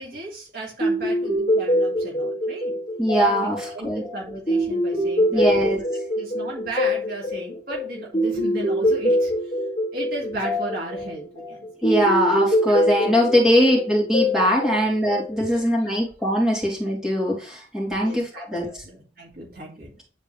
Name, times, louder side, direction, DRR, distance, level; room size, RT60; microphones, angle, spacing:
voice 1, 0.0-2.8 3.3-5.8 6.2-9.5 9.9-11.7 11.9-12.1 12.7-12.8 13.0-13.2 18.0-20.0, right 1 dB, 55° right, -2 dB, 2.3 m, -35 dB
sound 1, 0.8-15.6, equal, 30° left, 2.4 m, -24 dB
voice 2, 3.0-4.0 5.3-5.8 11.8-18.7, equal, 5° right, -4 dB, 3.0 m, -21 dB
10.5 x 4.4 x 3.3 m, 0.38 s
head